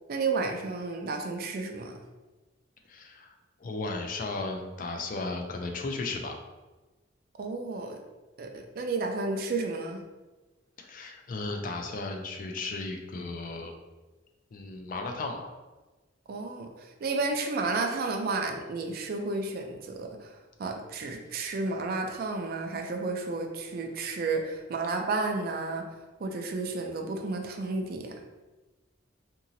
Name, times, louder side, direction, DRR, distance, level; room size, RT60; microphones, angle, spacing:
voice 1, 0.1-2.0 7.4-8.0 8.4-10.0 16.3-28.2, right 3 dB, 50° right, 4 dB, 0.4 m, -32 dB
voice 2, 2.9-3.3 3.6-6.3 10.8-13.7 14.5-15.5, left 3 dB, 45° left, 3 dB, 0.4 m, -35 dB
2.9 x 2.7 x 2.6 m, 1.2 s
head